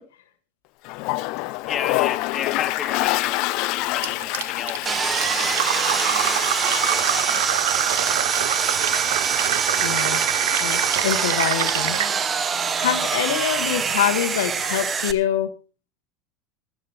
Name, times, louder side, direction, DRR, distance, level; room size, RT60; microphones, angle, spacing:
Toilet flush, 0.8-7.6, left 19 dB, 65° left, 0.6 m, -27 dB
voice 1, 1.7-7.4 8.9-9.0, left 8 dB, 35° left, 5 dB, 1.9 m, -34 dB
Fill (with liquid), 4.0-12.1, right 12 dB, 80° right, 0.6 m, -26 dB
Sawing, 4.9-15.1, right 6 dB, 30° right, 1.1 m, -24 dB
voice 2, 9.8-10.2 10.6-12.0 12.8-15.5, left 10 dB, 80° left, 6 dB, 1.1 m, -25 dB
15.5 x 12.0 x 3.4 m, 0.34 s
hypercardioid pair, 85°, 0 cm